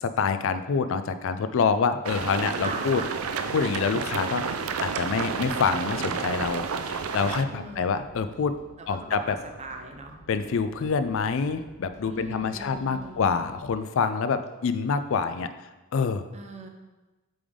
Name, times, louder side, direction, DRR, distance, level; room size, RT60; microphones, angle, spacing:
voice 1, 0.0-3.0 3.5-4.5 4.8-8.6 8.9-9.2 10.3-15.5 15.9-16.2, left 5 dB, 65° left, 11 dB, 0.4 m, -26 dB
sound 1, 2.0-7.4, right 5 dB, 90° right, 0.4 m, -30 dB
voice 2, 2.6-3.1 7.5-8.1 8.8-10.1 12.0-13.3 16.3-16.7, right 2 dB, 30° right, 4 dB, 0.7 m, -40 dB
sound 2, 3.8-13.6, equal, 15° left, 1.1 m, -53 dB
8.5 x 3.5 x 3.6 m, 1.1 s
head